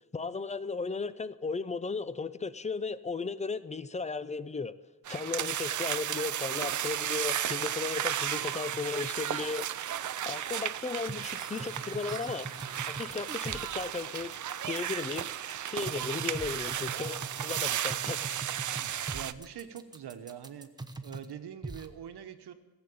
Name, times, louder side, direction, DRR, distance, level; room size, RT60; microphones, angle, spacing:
voice 1, 0.1-4.7 5.1-9.7 10.2-12.5 12.9-14.3 14.7-15.3 15.7-18.2, left 4 dB, 20° left, 15 dB, 0.5 m, -35 dB
sound 1, 5.1-19.3, right 11 dB, 50° right, 0.5 m, -34 dB
sound 2, 10.9-21.3 21.6-21.9, right 2 dB, 10° right, 0.9 m, -42 dB
voice 2, 18.8-20.7 21.0-22.5, right 9 dB, 80° right, 8 dB, 1.2 m, -44 dB
15.5 x 7.9 x 8.6 m, 1.2 s
cardioid pair, 105°, 39 cm